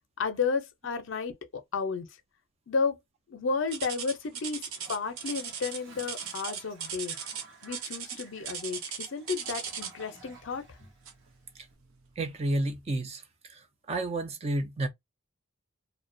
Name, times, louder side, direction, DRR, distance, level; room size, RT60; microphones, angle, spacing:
voice 1, 0.2-2.1 2.7-3.0 3.3-4.6 4.9-7.1 7.6-10.6, left 5 dB, 65° left, 0.5 m, -32 dB
sound 1, 3.7-10.1 11.0-11.3 11.9-12.0 12.6-12.7, right 7 dB, 85° right, 0.6 m, -38 dB
Toilet flush, 4.7-11.6, right 3 dB, 65° right, 1.0 m, -54 dB
voice 2, 12.2-13.2 13.5-14.9, right 2 dB, 30° right, 0.4 m, -31 dB
2.3 x 2.1 x 2.5 m
head